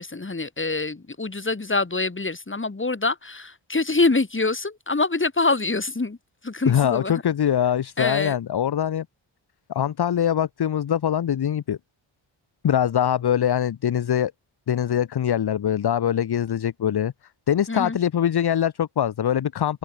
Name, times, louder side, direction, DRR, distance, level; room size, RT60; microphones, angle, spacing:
voice 1, 0.0-6.2 6.4-7.1 8.0-8.4 17.7-18.0, left 3 dB, 25° left, 5.8 m, -25 dB
voice 2, 6.7-9.1 9.7-11.8 12.6-14.3 14.7-17.1 17.5-19.8, left 9 dB, 55° left, 0.9 m, -23 dB
open air
wide cardioid pair, 140°, 48 cm